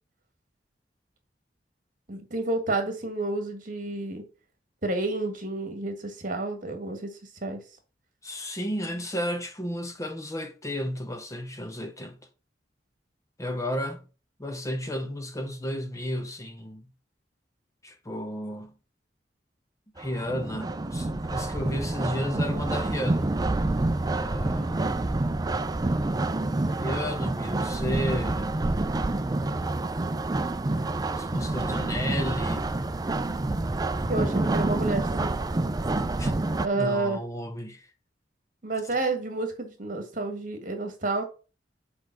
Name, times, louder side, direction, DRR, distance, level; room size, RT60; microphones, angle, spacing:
voice 1, 2.1-4.2 4.8-7.6 34.1-35.3 36.6-37.2 38.6-41.2, right 2 dB, 50° right, 1.7 m, -30 dB
voice 2, 8.2-12.2 13.4-14.0 14.4-16.9 17.8-18.7 20.0-23.3 24.2-24.8 26.7-28.6 31.1-32.7 36.2-36.3 36.7-37.9, equal, 20° left, 0.7 m, -33 dB
sound 1, 20.0-36.7, right 2 dB, 20° right, 0.4 m, -28 dB
5.3 x 4.9 x 5.8 m
head